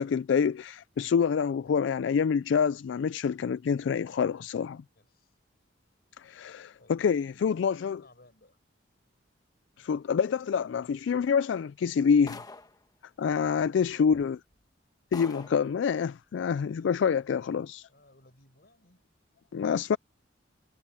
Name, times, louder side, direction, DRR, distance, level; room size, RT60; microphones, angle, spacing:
voice 1, 0.0-4.8 6.2-8.0 9.8-12.4 13.2-14.4 15.1-17.8 19.5-20.0, left 6 dB, 70° left, 0.3 m, -27 dB
voice 2, 4.9-5.3 6.2-6.4 6.8-8.6 13.5-14.2 16.7-17.5 17.9-19.0, left 2 dB, 55° left, 7.6 m, -59 dB
sound 1, 12.3-12.8 13.9-14.0 14.5-14.6 15.1-15.7, left 3 dB, 20° left, 1.3 m, -44 dB
head